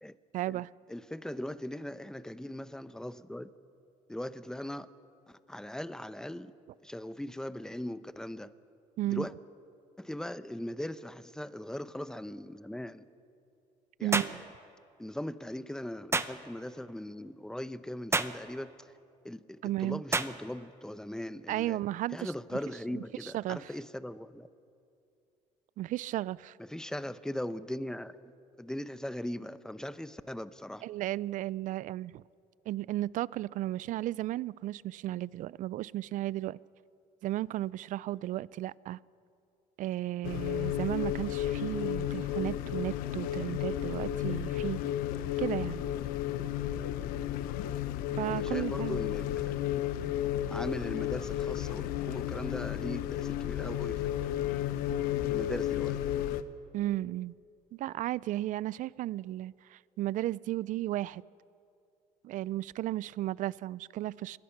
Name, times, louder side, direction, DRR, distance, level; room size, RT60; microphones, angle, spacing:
voice 1, 0.3-0.7 9.0-9.3 14.0-14.4 19.6-20.0 21.5-22.3 22.9-23.7 25.8-26.5 30.8-32.2 32.7-36.6 37.2-39.0 39.8-44.8 45.4-45.8 48.2-49.0 56.7-57.3 57.7-61.2 62.2-64.4, right 15 dB, 65° right, 0.4 m, -34 dB
voice 2, 0.9-3.5 4.1-4.9 5.3-6.5 6.8-8.5 9.1-9.3 10.0-13.0 14.0-14.4 15.0-18.9 19.2-21.8 22.1-24.5 26.7-28.2 28.6-30.8 48.3-49.7 50.5-54.3 55.3-56.0, left 1 dB, 5° left, 0.9 m, -39 dB
sound 1, 14.1-14.4 16.1-16.4 18.1-18.4 20.1-20.4, right 3 dB, 20° right, 0.9 m, -29 dB
sound 2, 40.2-56.4, left 12 dB, 85° left, 0.9 m, -33 dB
27.0 x 21.0 x 5.9 m
cardioid pair, 90°, 14 cm